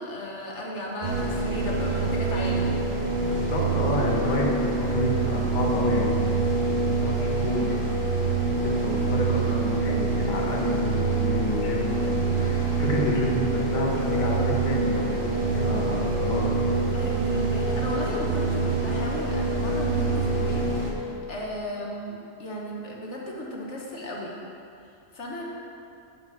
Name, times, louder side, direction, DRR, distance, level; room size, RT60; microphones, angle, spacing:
voice 1, 0.0-2.8 16.9-20.6 21.0-24.3 25.1-25.4, left 1 dB, 65° left, -2 dB, 1.5 m, -35 dB
sound 1, 1.0-20.9, right 3 dB, 45° right, 1.4 m, -25 dB
voice 2, 3.3-6.4 6.7-7.9 8.1-16.8, equal, 40° left, -2 dB, 1.3 m, -29 dB
9.5 x 4.9 x 7.7 m, 2.6 s
omnidirectional pair, 1.3 m